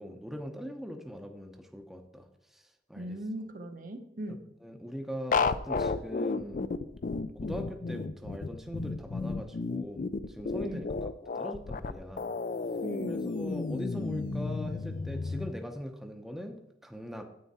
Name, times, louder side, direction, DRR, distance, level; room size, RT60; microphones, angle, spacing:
voice 1, 0.0-3.2 4.6-6.6 7.3-11.1 11.3-12.3 13.1-17.2, equal, ahead, 4 dB, 0.7 m, -41 dB
voice 2, 3.0-4.4 10.6-10.9 12.8-13.3, right 1 dB, 45° right, 6 dB, 0.9 m, -39 dB
sound 1, 5.3-15.5, left 4 dB, 45° left, 0.4 m, -32 dB
9.5 x 8.3 x 4.2 m, 0.83 s
head